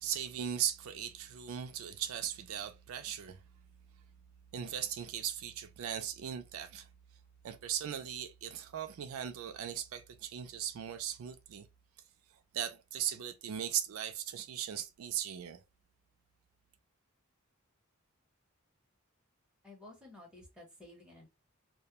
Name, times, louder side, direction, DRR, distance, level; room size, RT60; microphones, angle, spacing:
voice 1, 0.0-3.4 4.5-6.9 7.4-11.7 12.5-15.6, right 9 dB, 80° right, 0.4 m, -38 dB
voice 2, 19.6-21.3, left 2 dB, 5° right, 0.8 m, -53 dB
2.3 x 2.1 x 2.8 m
head